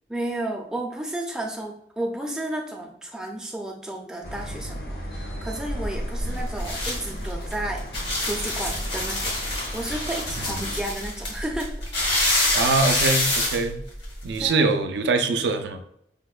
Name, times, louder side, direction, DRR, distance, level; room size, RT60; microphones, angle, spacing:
voice 1, 0.1-9.4 9.7-11.8 14.4-14.7, right 1 dB, 5° right, 0 dB, 0.4 m, -32 dB
sound 1, 4.2-10.8, equal, 60° left, 0.7 m, -36 dB
sound 2, 5.7-14.5, left 1 dB, 80° left, 1.0 m, -26 dB
voice 2, 12.5-13.8 14.2-15.8, right 3 dB, 80° right, 7 dB, 0.4 m, -23 dB
5.0 x 2.1 x 2.3 m, 0.74 s
head